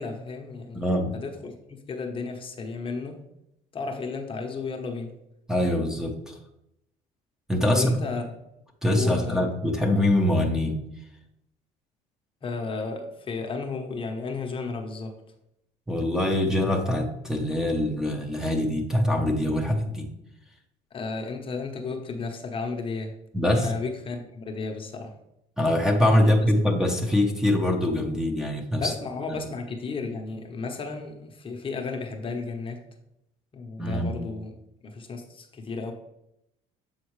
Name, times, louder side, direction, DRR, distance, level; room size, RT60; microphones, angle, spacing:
voice 1, 0.0-3.2 3.7-5.1 7.7-8.3 8.9-9.4 12.4-15.2 20.9-23.2 23.5-25.2 28.8-32.8 33.5-34.5 34.8-35.9, left 4 dB, 35° left, 3 dB, 0.9 m, -33 dB
voice 2, 0.7-1.1 5.5-6.3 7.5-8.0 8.8-10.8 15.9-20.1 23.3-23.7 25.6-28.9 29.3-29.4 33.8-34.1, left 1 dB, 5° right, 3 dB, 0.8 m, -23 dB
7.3 x 4.2 x 3.1 m, 0.83 s
cardioid pair, 105°, 16 cm